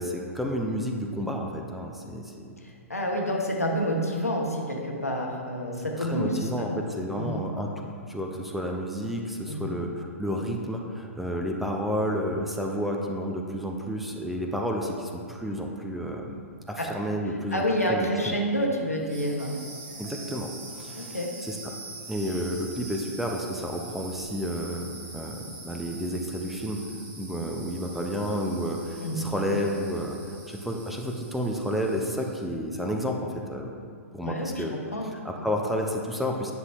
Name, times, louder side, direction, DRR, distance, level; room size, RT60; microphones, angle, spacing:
voice 1, 0.0-2.5 5.8-18.4 20.0-20.5 20.8-21.8 22.1-26.8 27.2-33.7 34.1-34.7 35.1-36.5, equal, ahead, 0 dB, 0.5 m, -31 dB
voice 2, 2.9-6.8 7.2-7.4 9.5-9.7 16.8-16.9 17.5-19.6 21.0-21.3 29.0-29.3 34.2-35.1, equal, 85° left, 0 dB, 1.0 m, -28 dB
sound 1, 19.0-32.5, right 3 dB, 35° right, 1.3 m, -44 dB
9.4 x 5.9 x 2.4 m, 2.2 s
figure-of-eight pair, 110°, 8 cm